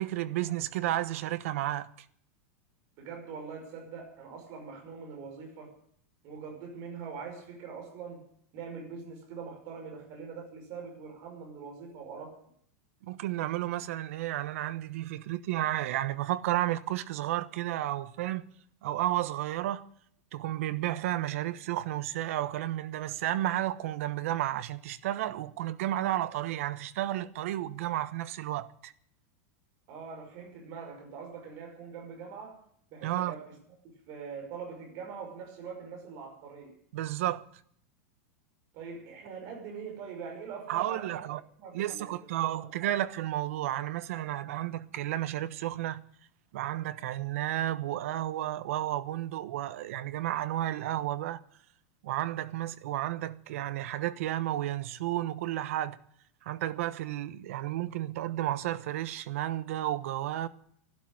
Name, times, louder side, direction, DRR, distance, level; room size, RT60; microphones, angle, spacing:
voice 1, 0.0-1.9 13.0-18.5 18.8-19.9 20.3-28.9 33.0-33.3 36.9-37.4 40.7-41.4 41.7-46.0 46.5-51.4 52.0-56.0 56.4-60.5, right 14 dB, 65° right, 1.1 m, -32 dB
voice 2, 3.0-5.8 6.2-8.2 8.5-12.4 29.9-32.6 32.9-33.6 33.8-36.8 38.7-41.3 41.6-42.3 42.5-42.7, right 5 dB, 40° right, 5.8 m, -43 dB
12.5 x 12.0 x 8.9 m
supercardioid pair, 160°, 8 cm